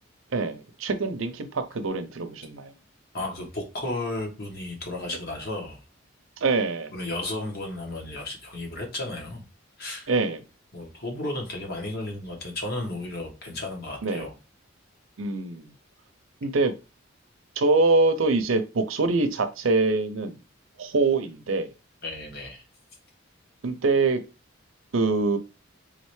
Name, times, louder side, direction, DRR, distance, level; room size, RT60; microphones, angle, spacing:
voice 1, 0.3-2.7 6.4-6.9 10.1-10.4 14.0-14.3 15.2-15.7 16.4-16.7 17.6-20.4 20.8-21.7 23.6-24.2 24.9-25.4, right 3 dB, 85° right, 10 dB, 0.6 m, -24 dB
voice 2, 3.1-5.8 6.9-9.4 9.8-10.1 10.7-14.3 22.0-22.6, left 2 dB, 55° left, 1 dB, 1.4 m, -33 dB
3.8 x 3.2 x 3.2 m, 0.29 s
head